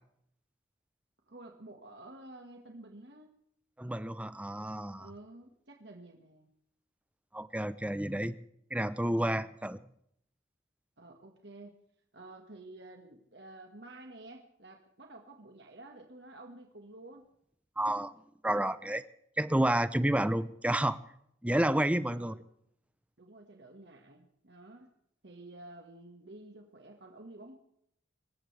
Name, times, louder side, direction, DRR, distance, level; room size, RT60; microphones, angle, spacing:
voice 1, 1.3-3.4 5.0-6.5 11.0-11.7 12.1-17.3 22.1-22.5 23.2-24.9 25.2-27.5, right 2 dB, 60° right, 3 dB, 1.8 m, -51 dB
voice 2, 3.8-5.1 7.3-8.4 8.7-9.8 17.8-18.1 18.4-19.0 19.4-21.0 21.4-22.3, right 1 dB, 5° right, 14 dB, 0.7 m, -30 dB
26.0 x 15.0 x 3.4 m, 0.72 s
head